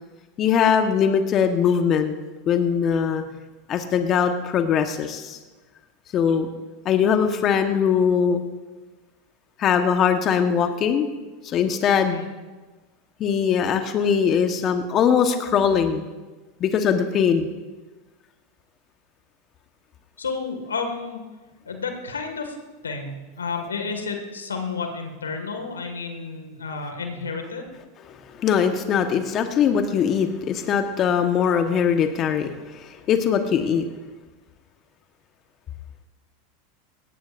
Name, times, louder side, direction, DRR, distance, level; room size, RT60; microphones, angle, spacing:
voice 1, 0.4-2.1 2.5-3.2 3.7-5.4 6.1-6.5 6.8-8.4 9.6-11.1 11.4-12.2 13.2-16.1 16.6-17.5 28.3-33.8, left 7 dB, 40° left, 6 dB, 1.2 m, -21 dB
voice 2, 20.2-21.3 21.7-22.6 22.8-27.7, left 4 dB, 90° left, 5 dB, 1.9 m, -31 dB
19.5 x 17.5 x 2.6 m, 1.2 s
hypercardioid pair, 90°, 0 cm